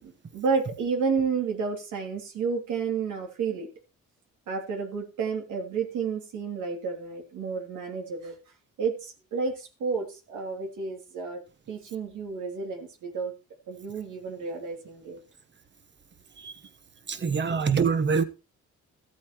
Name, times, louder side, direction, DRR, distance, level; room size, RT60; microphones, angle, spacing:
voice 1, 0.0-3.7 4.5-8.4 8.8-11.4 11.7-13.3 13.7-15.2, right 5 dB, 80° right, 3.1 m, -31 dB
voice 2, 17.1-18.2, right 5 dB, 35° right, 1.3 m, -24 dB
15.0 x 8.5 x 3.1 m
cardioid pair, 90°, 30 cm